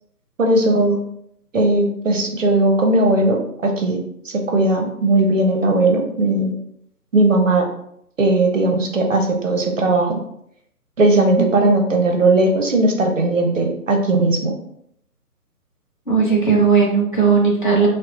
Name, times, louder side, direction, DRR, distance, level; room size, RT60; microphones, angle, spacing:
voice 1, 0.4-1.0 1.5-4.0 4.3-6.5 7.1-7.7 8.2-10.2 11.0-14.5, right 2 dB, 55° right, 3 dB, 0.5 m, -17 dB
voice 2, 16.1-17.9, right 5 dB, 35° left, -4 dB, 0.6 m, -16 dB
2.8 x 2.0 x 2.4 m, 0.73 s
figure-of-eight pair, 150°, 46 cm